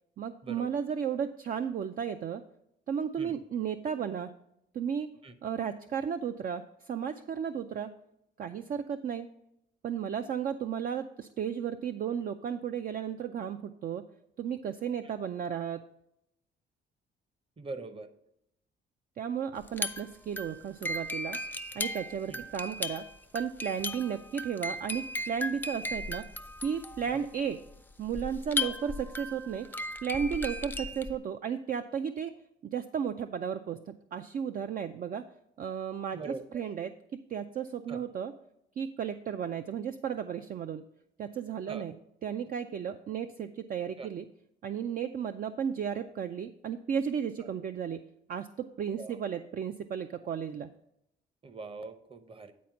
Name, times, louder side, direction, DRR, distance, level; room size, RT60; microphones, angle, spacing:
voice 1, 0.2-2.4 2.9-4.3 4.7-5.1 5.4-7.9 8.4-9.3 9.8-14.0 14.4-15.8 19.2-21.4 21.7-23.0 23.3-26.2 26.6-27.6 28.0-29.7 30.0-32.3 32.7-35.2 35.6-38.3 38.8-40.8 41.2-41.9 42.2-44.3 44.6-48.0 48.3-50.7, right 7 dB, 45° right, 8 dB, 0.4 m, -34 dB
voice 2, 17.6-18.1 22.3-22.4 27.1-27.2 28.6-28.7 36.1-36.6 37.9-38.1 41.7-41.9 44.0-44.1 47.4-47.5 49.0-49.2 51.4-52.5, right 3 dB, 25° right, 11 dB, 0.8 m, -42 dB
sound 1, 19.6-31.2, left 2 dB, 10° left, 0.4 m, -37 dB
9.3 x 4.2 x 5.7 m, 0.80 s
cardioid pair, 90°, 20 cm